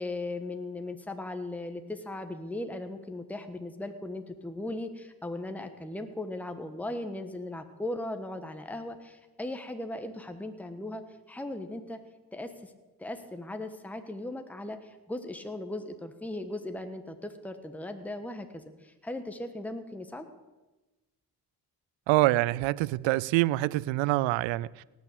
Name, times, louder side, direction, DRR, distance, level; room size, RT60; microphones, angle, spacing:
voice 1, 0.0-12.0 12.3-12.7 13.0-20.3, left 2 dB, 5° left, 1.3 m, -38 dB
voice 2, 22.1-24.8, right 18 dB, 70° right, 0.5 m, -25 dB
18.5 x 6.2 x 6.9 m
hypercardioid pair, 40°, 48 cm